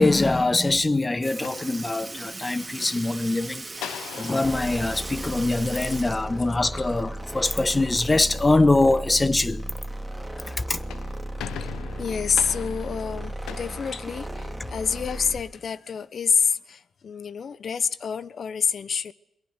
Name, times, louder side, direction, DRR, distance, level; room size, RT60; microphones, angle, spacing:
voice 1, 0.0-3.6 4.2-9.6 10.7-10.8, left 2 dB, 25° left, 1.4 m, -23 dB
Sink (filling or washing) / Liquid, 0.8-0.9 1.2-7.3 7.7-7.8 9.3-9.4 10.3-10.4 11.2-11.5 12.3-12.4, right 3 dB, 25° right, 2.7 m, -39 dB
Cell door, 1.4-2.4 3.8-6.2 10.6-14.7, left 11 dB, 85° left, 1.0 m, -41 dB
sound 1, 4.4-15.5, right 1 dB, 5° right, 3.7 m, -35 dB
voice 2, 12.0-19.1, left 6 dB, 60° left, 1.1 m, -27 dB
22.0 x 21.5 x 8.2 m
supercardioid pair, 50°, 0 cm